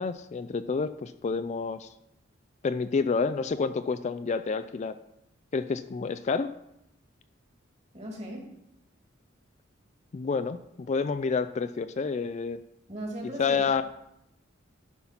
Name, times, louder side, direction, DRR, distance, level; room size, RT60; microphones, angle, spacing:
voice 1, 0.0-1.9 2.6-4.9 5.5-6.5 10.1-12.6 13.4-13.8, left 5 dB, 35° left, 11 dB, 0.3 m, -29 dB
voice 2, 7.9-8.4 12.9-13.6, right 1 dB, 35° right, -1 dB, 2.4 m, -37 dB
11.5 x 4.0 x 5.8 m, 0.81 s
head